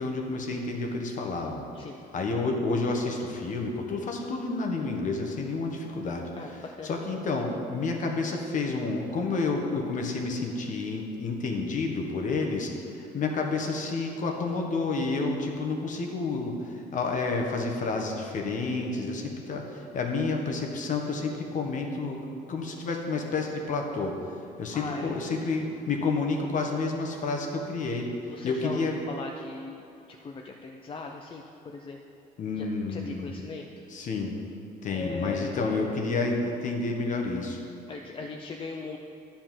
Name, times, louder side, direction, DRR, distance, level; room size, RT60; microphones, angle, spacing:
voice 1, 0.0-1.7 2.1-6.3 6.8-28.1 28.4-29.0 32.4-33.3 33.9-34.3 34.8-37.6, left 3 dB, 50° left, 2 dB, 1.3 m, -30 dB
voice 2, 6.4-7.0 24.7-25.2 28.3-29.8 30.1-32.0 32.6-33.7 34.9-35.8 37.9-39.0, left 3 dB, 30° left, 2 dB, 0.6 m, -39 dB
10.5 x 4.4 x 7.5 m, 2.7 s
cardioid pair, 110°, 17 cm